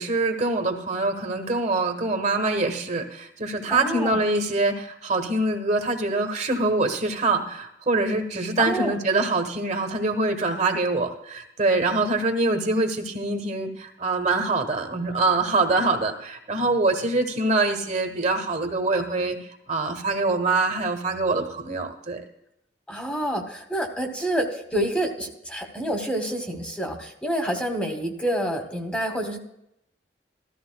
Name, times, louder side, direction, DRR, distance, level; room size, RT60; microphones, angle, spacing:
voice 1, 0.0-19.4 19.7-22.2, right 2 dB, 45° right, 4 dB, 1.2 m, -24 dB
voice 2, 3.7-4.2 8.6-9.0 22.9-29.4, right 1 dB, 5° left, 3 dB, 1.1 m, -28 dB
14.5 x 13.5 x 2.3 m, 0.80 s
head